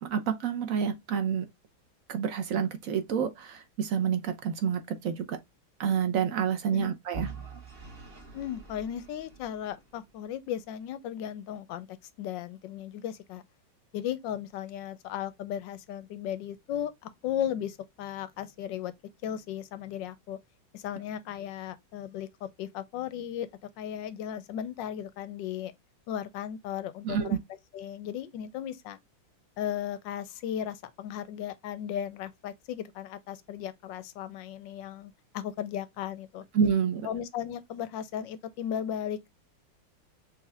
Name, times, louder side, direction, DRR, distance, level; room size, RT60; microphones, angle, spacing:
voice 1, 0.0-1.4 2.1-5.4 5.8-7.3 27.0-27.4 36.5-37.1, right 7 dB, 65° right, 0.8 m, -28 dB
Vehicle / Engine, 7.1-10.1, right 4 dB, 35° right, 1.1 m, -44 dB
voice 2, 8.3-13.4 13.9-18.9 19.2-20.4 20.7-23.5 23.8-25.7 26.1-27.4 27.7-29.0 29.6-36.4 37.0-39.3, left 10 dB, 75° left, 1.2 m, -36 dB
6.3 x 3.0 x 2.3 m
omnidirectional pair, 2.3 m